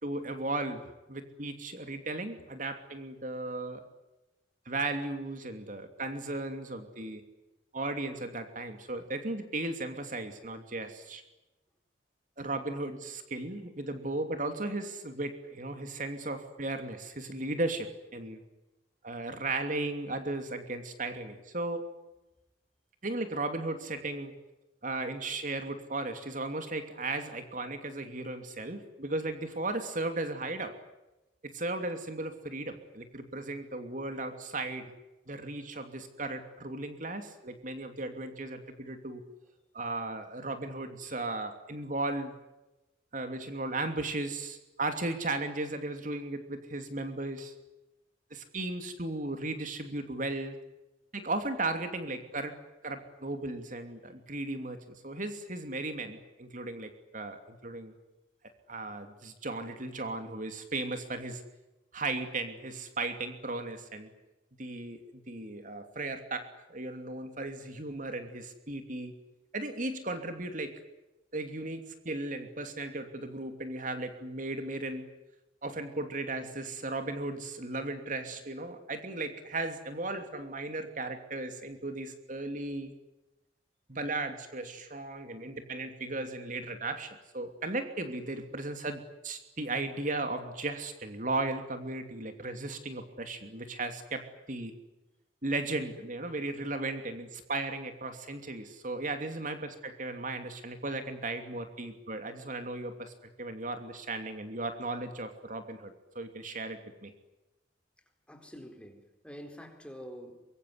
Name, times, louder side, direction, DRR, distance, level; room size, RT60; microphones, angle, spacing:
voice 1, 0.0-3.8 4.6-7.2 7.7-11.2 12.4-18.4 19.0-21.9 23.0-24.3 24.8-30.7 31.4-34.9 35.3-39.2 39.7-42.3 43.1-47.5 48.3-50.6 51.1-52.6 52.8-57.9 58.7-61.4 61.9-64.1 64.6-69.1 69.5-70.7 71.3-75.1 75.6-82.9 83.9-94.7 95.4-103.1 103.4-107.1, right 2 dB, 45° right, 2.9 m, -36 dB
voice 2, 108.3-110.5, equal, 5° left, 4.3 m, -47 dB
25.0 x 22.5 x 9.7 m
head